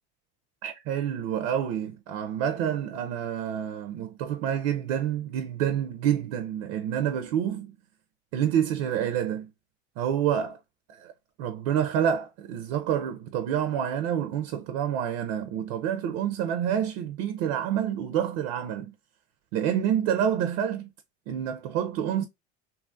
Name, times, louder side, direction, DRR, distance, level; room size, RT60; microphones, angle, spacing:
voice 1, 0.6-7.7 8.3-9.5 10.0-10.6 10.9-11.1 11.4-18.9 19.5-20.9 21.3-22.2, right 9 dB, 65° right, 0.6 m, -28 dB
2.9 x 2.4 x 2.5 m
supercardioid pair, 115°, 32 cm